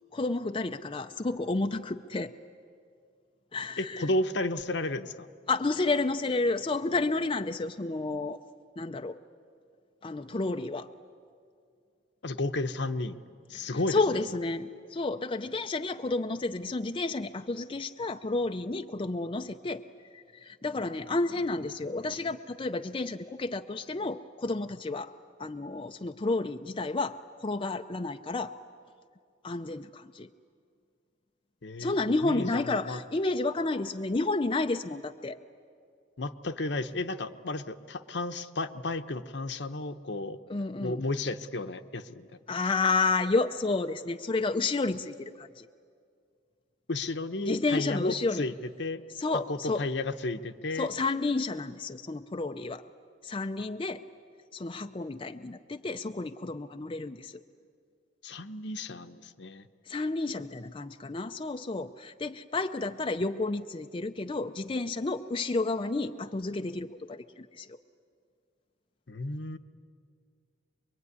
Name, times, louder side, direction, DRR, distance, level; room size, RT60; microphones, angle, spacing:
voice 1, 0.1-2.3 3.5-4.1 5.5-8.4 8.8-9.2 10.0-10.9 13.6-19.8 20.1-25.1 25.4-28.5 29.4-30.3 31.8-35.4 40.5-41.1 42.5-45.7 47.5-48.5 49.1-49.9 50.7-52.8 53.2-54.0 54.5-57.4 59.9-67.8, left 3 dB, 30° left, 6 dB, 0.6 m, -31 dB
voice 2, 3.8-5.3 12.2-13.2 13.5-14.0 31.6-32.0 32.2-33.0 36.2-40.4 40.8-42.6 46.9-48.5 48.8-49.0 49.5-50.9 58.2-59.6 69.1-69.6, left 2 dB, 70° left, 9 dB, 1.0 m, -33 dB
24.5 x 23.0 x 9.7 m, 2.2 s
head